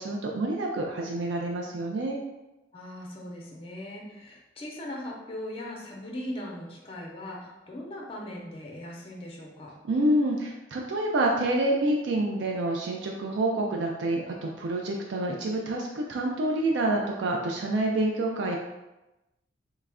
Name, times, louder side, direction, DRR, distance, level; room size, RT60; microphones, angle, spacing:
voice 1, 0.0-2.2 9.9-18.6, right 1 dB, 85° right, 0 dB, 0.4 m, -27 dB
voice 2, 2.7-9.7, left 1 dB, 30° left, -2 dB, 0.6 m, -39 dB
3.1 x 2.4 x 3.5 m, 1.0 s
head